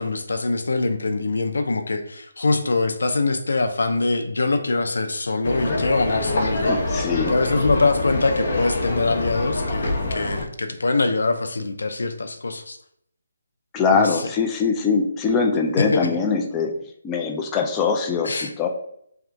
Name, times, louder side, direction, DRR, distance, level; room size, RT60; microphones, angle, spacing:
voice 1, 0.0-12.8 13.9-14.3 15.8-16.1 18.2-18.5, left 3 dB, 80° left, 7 dB, 0.6 m, -23 dB
sound 1, 5.4-10.4, left 2 dB, 55° left, 0.9 m, -25 dB
voice 2, 6.7-7.3 13.7-16.8 17.0-18.7, left 5 dB, 15° left, 2 dB, 0.3 m, -22 dB
3.5 x 2.4 x 4.4 m, 0.70 s
hypercardioid pair, 165°, 0 cm